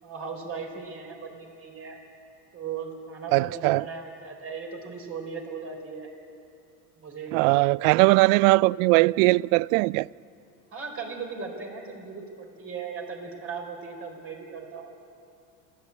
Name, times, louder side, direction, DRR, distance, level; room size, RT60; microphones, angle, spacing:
voice 1, 0.0-2.0 2.5-6.1 7.0-7.4 10.7-14.9, right 5 dB, 30° right, 4.6 m, -37 dB
voice 2, 3.3-3.9 7.3-10.1, right 23 dB, 65° right, 0.5 m, -20 dB
28.0 x 13.5 x 8.5 m
supercardioid pair, 120°, 42 cm